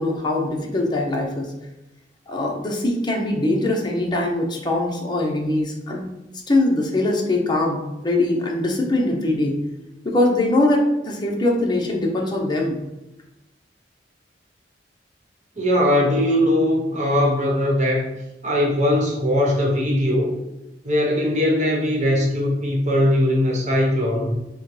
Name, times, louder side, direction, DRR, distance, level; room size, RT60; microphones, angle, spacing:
voice 1, 0.0-1.5 2.3-6.1 6.5-9.6 10.0-12.8, left 2 dB, 25° left, -1 dB, 0.7 m, -22 dB
voice 2, 15.6-20.3 20.8-24.3, left 1 dB, 40° right, -2 dB, 1.1 m, -20 dB
6.2 x 2.2 x 3.2 m, 0.97 s
head